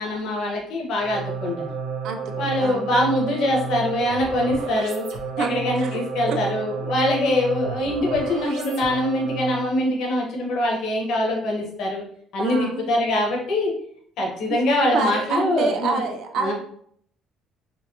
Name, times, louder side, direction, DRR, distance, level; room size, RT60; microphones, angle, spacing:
voice 1, 0.0-1.7 2.4-5.0 5.4-12.0 12.3-13.7 14.2-16.0 16.4-16.5, left 1 dB, 65° left, -1 dB, 1.1 m, -23 dB
sound 1, 1.0-9.8, right 6 dB, 85° right, 0.8 m, -31 dB
voice 2, 2.0-2.9 5.4-6.0 6.3-6.4 12.4-12.8 14.9-16.5, right 4 dB, 60° right, 4 dB, 0.5 m, -27 dB
4.4 x 2.2 x 2.9 m, 0.63 s
cardioid pair, 160°, 0 cm